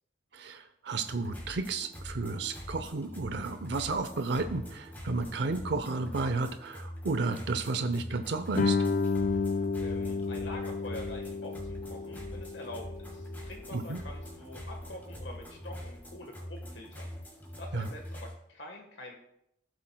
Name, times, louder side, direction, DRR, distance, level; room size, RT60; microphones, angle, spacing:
voice 1, 0.3-8.8 13.7-14.0 17.7-17.9, right 3 dB, 70° right, 9 dB, 0.6 m, -32 dB
sound 1, 1.1-18.3, equal, 10° left, 2.6 m, -44 dB
Guitar, 8.6-13.9, left 4 dB, 45° left, 0.4 m, -32 dB
voice 2, 9.8-17.1 17.6-19.2, left 1 dB, 75° left, 1 dB, 1.4 m, -45 dB
16.0 x 7.7 x 2.2 m, 0.77 s
head